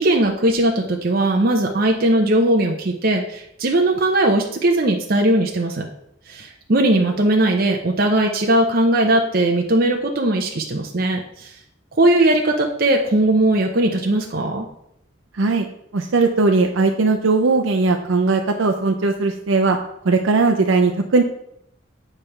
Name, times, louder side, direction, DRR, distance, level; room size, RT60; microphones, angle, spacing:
voice 1, 0.0-5.8 6.3-11.5 12.0-14.7, right 1 dB, 50° right, 1 dB, 0.7 m, -19 dB
voice 2, 15.3-15.7 15.9-19.8 20.0-21.2, right 3 dB, 90° right, 4 dB, 0.6 m, -18 dB
9.0 x 3.4 x 5.7 m, 0.77 s
head